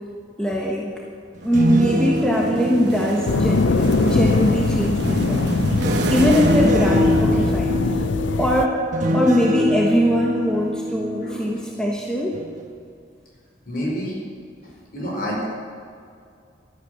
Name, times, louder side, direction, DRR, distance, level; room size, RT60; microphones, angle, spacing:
voice 1, 0.4-0.9 1.4-5.5 5.9-8.0 8.4-8.8 9.1-12.4, equal, 5° left, -3 dB, 1.2 m, -21 dB
sound 1, 1.3-4.2 5.0-11.9 12.3-12.6, equal, 40° right, 1.3 m, -25 dB
sound 2, 1.4-7.9, right 1 dB, 60° right, 1.2 m, -29 dB
sound 3, 3.3-8.7, left 3 dB, 70° left, 0.5 m, -22 dB
voice 2, 13.6-14.2 14.9-15.4, equal, 45° left, -3 dB, 4.8 m, -28 dB
13.0 x 11.5 x 8.2 m, 2.3 s
head